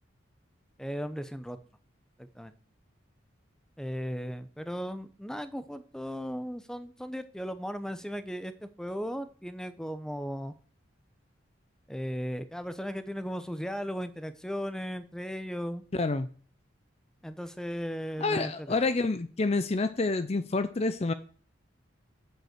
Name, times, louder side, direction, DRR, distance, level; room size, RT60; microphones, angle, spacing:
voice 1, 0.8-1.6 2.2-2.5 3.8-10.5 11.9-15.8 17.2-18.8, equal, 5° left, 0.8 m, -36 dB
voice 2, 15.9-16.3 18.2-21.1, left 3 dB, 35° left, 0.5 m, -28 dB
7.9 x 6.9 x 8.0 m
head